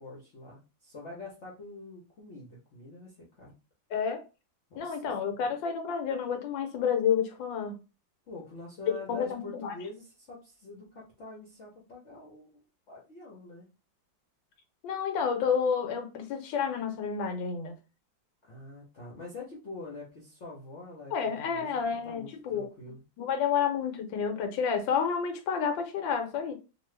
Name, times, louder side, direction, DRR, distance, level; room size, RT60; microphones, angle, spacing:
voice 1, 0.0-3.5 4.7-5.1 5.4-5.5 8.3-12.5 12.9-13.7 18.4-23.0, left 3 dB, 50° left, 0.9 m, -45 dB
voice 2, 3.9-4.2 4.8-7.7 9.1-9.7 14.8-17.8 21.1-22.7 23.2-26.5, left 7 dB, 80° left, 1.4 m, -30 dB
3.0 x 2.4 x 3.2 m
omnidirectional pair, 2.0 m